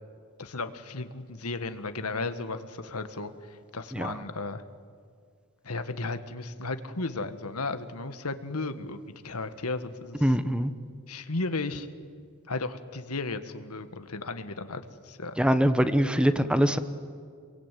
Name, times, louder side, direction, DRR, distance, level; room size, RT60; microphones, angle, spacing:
voice 1, 0.4-4.6 5.6-10.3 11.1-11.9 12.5-15.4, left 3 dB, 85° left, 9 dB, 1.7 m, -34 dB
voice 2, 10.2-10.7 15.4-16.8, equal, 5° right, 11 dB, 1.1 m, -23 dB
27.5 x 23.0 x 9.2 m, 2.1 s
head